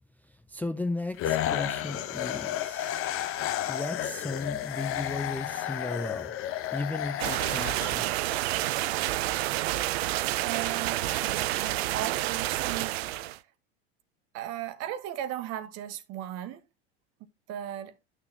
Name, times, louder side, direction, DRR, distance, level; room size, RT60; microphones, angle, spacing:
voice 1, 0.5-3.1 3.7-6.3 6.7-8.1, left 2 dB, 5° left, 0.4 m, -35 dB
sound 1, 1.2-8.4, left 12 dB, 45° left, 0.9 m, -32 dB
sound 2, 7.2-13.4, right 16 dB, 80° right, 0.5 m, -29 dB
voice 2, 10.4-13.2 14.3-16.6 17.5-18.0, right 11 dB, 55° right, 1.1 m, -36 dB
9.7 x 6.4 x 2.8 m
hypercardioid pair, 100°, 31 cm